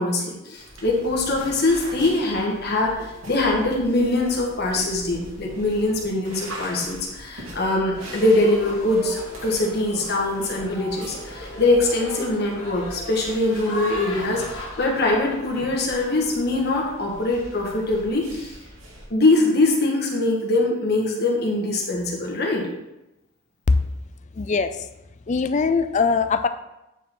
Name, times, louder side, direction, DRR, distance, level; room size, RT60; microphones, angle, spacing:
voice 1, 0.0-18.5 19.1-22.6, left 2 dB, 50° left, -1 dB, 1.6 m, -23 dB
sound 1, 0.5-19.0, right 1 dB, 80° right, 2.5 m, -42 dB
sound 2, 7.9-16.7, left 1 dB, 75° left, 1.7 m, -38 dB
voice 2, 24.4-24.7 25.3-26.5, left 4 dB, 35° left, 10 dB, 0.4 m, -20 dB
8.8 x 5.0 x 3.8 m, 0.93 s
head